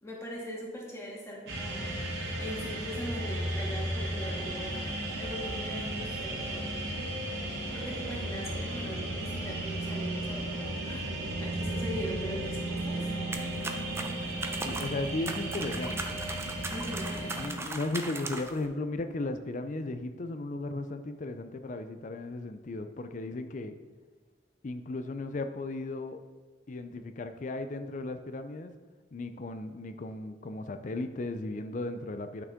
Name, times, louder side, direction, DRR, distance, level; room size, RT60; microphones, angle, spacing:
voice 1, 0.0-2.0 2.4-4.8 5.2-6.7 7.7-11.1 11.4-13.2 16.7-17.3, equal, 15° left, -4 dB, 2.1 m, -40 dB
sound 1, 1.5-17.5, right 1 dB, 70° right, 1.8 m, -34 dB
sound 2, 13.3-18.6, right 2 dB, 15° right, 0.6 m, -39 dB
voice 2, 14.6-16.2 17.4-23.8 24.6-26.2 26.7-28.7 29.1-32.4, left 2 dB, 45° left, 9 dB, 0.5 m, -36 dB
11.0 x 6.0 x 3.6 m, 1.4 s
head